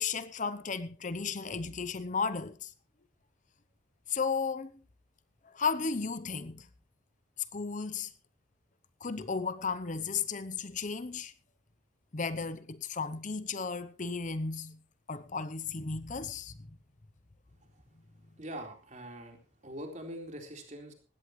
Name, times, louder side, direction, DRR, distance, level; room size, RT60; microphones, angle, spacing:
voice 1, 0.0-2.7 4.1-4.7 5.4-6.7 7.5-8.1 9.0-11.3 12.1-14.8 15.1-16.5, left 5 dB, 40° left, 0.7 m, -34 dB
voice 2, 18.4-20.9, right 1 dB, 35° right, 4.1 m, -43 dB
19.5 x 16.0 x 3.1 m
head